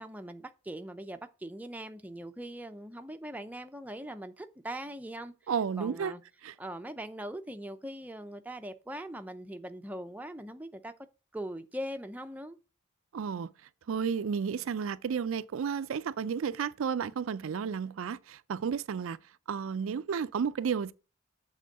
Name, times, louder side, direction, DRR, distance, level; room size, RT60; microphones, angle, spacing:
voice 1, 0.0-5.3 5.8-6.2 6.6-10.9 11.3-12.6, right 1 dB, 10° right, 0.5 m, -41 dB
voice 2, 5.5-6.1 6.4-6.5 13.1-13.5 13.9-19.2 19.5-20.9, right 6 dB, 75° right, 0.4 m, -32 dB
7.6 x 3.6 x 6.4 m
head